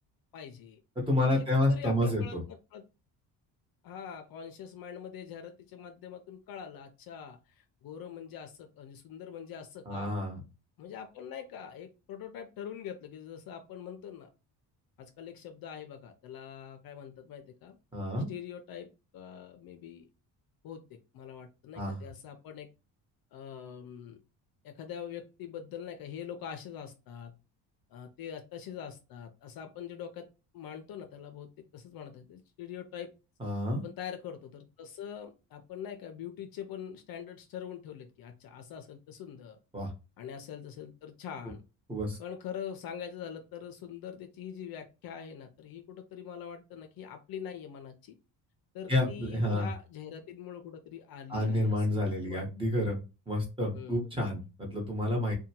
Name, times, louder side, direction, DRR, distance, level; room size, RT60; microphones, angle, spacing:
voice 1, 0.3-0.8 1.3-2.8 3.8-10.1 10.8-14.3 15.0-17.8 18.3-18.9 19.1-20.1 20.6-22.7 23.3-24.2 24.6-27.3 27.9-30.3 30.5-33.1 33.8-39.6 40.2-41.6 42.2-48.2 48.7-51.9 52.2-52.4 53.7-54.1, left 8 dB, 55° left, 6 dB, 0.5 m, -44 dB
voice 2, 1.0-2.4 9.9-10.4 17.9-18.3 21.7-22.0 33.4-33.8 39.7-39.9 41.9-42.2 48.9-49.7 51.3-53.0 53.3-55.3, left 1 dB, 10° right, -1 dB, 1.0 m, -29 dB
2.7 x 2.2 x 2.8 m, 0.29 s
cardioid pair, 115°, 43 cm